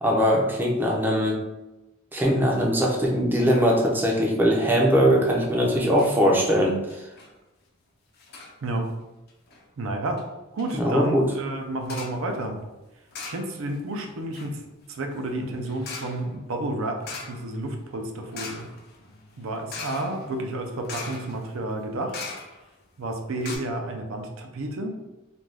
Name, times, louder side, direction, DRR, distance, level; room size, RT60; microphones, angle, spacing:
voice 1, 0.0-1.4 2.1-7.1 10.8-11.3, equal, 10° right, -2 dB, 0.4 m, -21 dB
sound 1, 5.3-5.6 5.9-6.2 6.5-6.6 6.9-7.3 8.2-8.6 9.3-9.6 10.2-10.3 10.6-10.8 11.8-12.2 13.1-13.8 14.1-22.8 23.1-23.2 23.4-23.6, left 4 dB, 50° left, 0.5 m, -41 dB
voice 2, 5.6-6.4 8.6-8.9 9.8-10.2 10.5-12.6 13.3-14.6 14.9-17.0 17.3-18.7 19.4-22.3 23.0-24.9, right 1 dB, 70° right, 4 dB, 0.5 m, -31 dB
2.5 x 2.2 x 3.2 m, 1.0 s
head